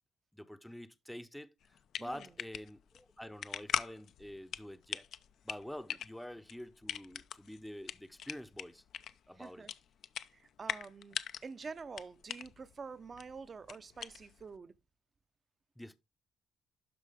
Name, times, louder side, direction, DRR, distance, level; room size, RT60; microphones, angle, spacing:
voice 1, 0.3-5.1 5.4-8.8 9.3-9.7 15.8-16.0, left 1 dB, 5° left, 0.7 m, -47 dB
sound 1, 1.6-14.6, left 9 dB, 70° left, 0.6 m, -42 dB
voice 2, 2.0-2.3 9.4-9.7 10.3-11.2 11.4-14.7, right 5 dB, 40° right, 0.8 m, -47 dB
12.0 x 4.5 x 3.5 m
cardioid pair, 90°, 0 cm